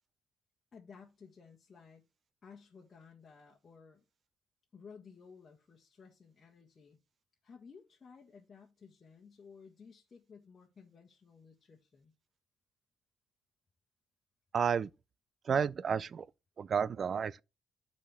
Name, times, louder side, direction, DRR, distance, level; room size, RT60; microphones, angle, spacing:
voice 1, 0.7-2.0 2.4-4.0 4.7-7.0 7.4-12.1, left 5 dB, 40° left, 1.4 m, -56 dB
voice 2, 14.5-14.9 15.4-16.3 16.6-17.4, right 7 dB, 50° right, 0.3 m, -31 dB
9.8 x 4.3 x 3.4 m
cardioid pair, 90°, 0 cm